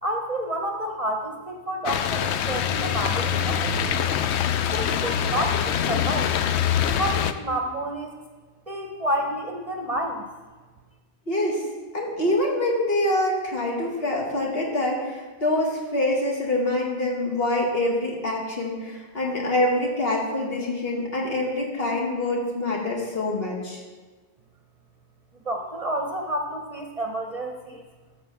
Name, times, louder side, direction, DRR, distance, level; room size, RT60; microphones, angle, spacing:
voice 1, 0.0-4.2 4.7-6.3 6.9-8.1 8.7-10.2 25.4-27.8, right 1 dB, 35° right, 2 dB, 0.8 m, -29 dB
sound 1, 1.9-7.3, left 9 dB, 85° left, 0.9 m, -24 dB
voice 2, 11.3-11.6 11.9-23.8, left 1 dB, 65° left, -1 dB, 2.1 m, -25 dB
13.0 x 4.5 x 7.2 m, 1.4 s
omnidirectional pair, 1.1 m